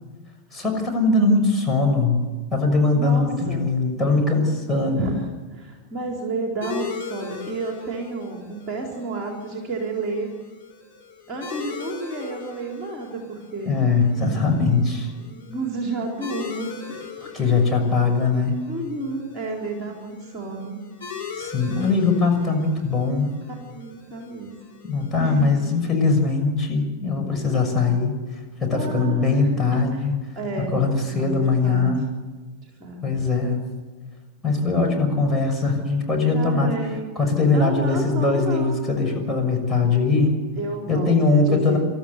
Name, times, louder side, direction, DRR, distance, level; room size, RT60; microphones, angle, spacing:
voice 1, 0.5-2.2 2.5-5.1 13.6-15.1 17.3-18.6 21.4-23.3 24.8-28.1 28.6-30.1 30.7-32.0 33.0-33.6 34.4-36.7 37.1-40.3 40.9-41.8, left 3 dB, 5° left, -1 dB, 6.5 m, -21 dB
voice 2, 2.9-3.7 5.0-10.3 11.3-13.8 15.3-17.0 18.7-20.8 23.7-24.5 25.2-25.6 28.7-30.0 30.4-30.7 31.1-31.8 32.6-33.2 36.3-37.2 37.5-38.8 40.6-41.8, right 3 dB, 30° right, 1 dB, 4.1 m, -31 dB
sound 1, 6.6-25.8, left 6 dB, 70° left, 5.9 m, -40 dB
28.0 x 13.5 x 8.3 m, 1.4 s
figure-of-eight pair, 90°, 0 cm